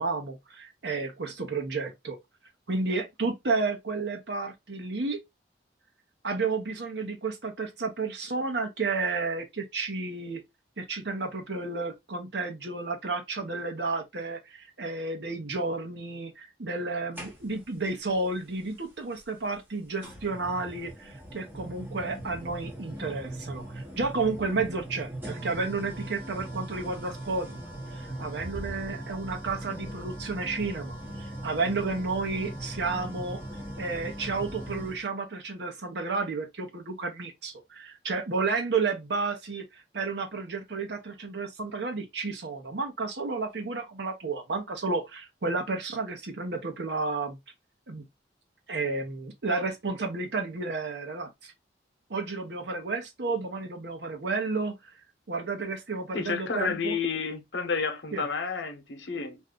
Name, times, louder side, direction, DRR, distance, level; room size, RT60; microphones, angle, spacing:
voice 1, 0.0-2.2 2.7-5.2 6.2-10.4 10.8-27.6 27.9-33.4 33.8-47.4 47.9-48.1 48.7-51.5 52.1-54.7 55.3-57.0 58.1-58.2, right 3 dB, 70° right, 0.9 m, -32 dB
sound 1, 17.1-17.8 19.1-19.2 20.0-35.0, right 1 dB, 10° right, 0.9 m, -40 dB
voice 2, 56.1-59.4, left 5 dB, 80° left, 0.8 m, -30 dB
2.6 x 2.4 x 3.5 m
head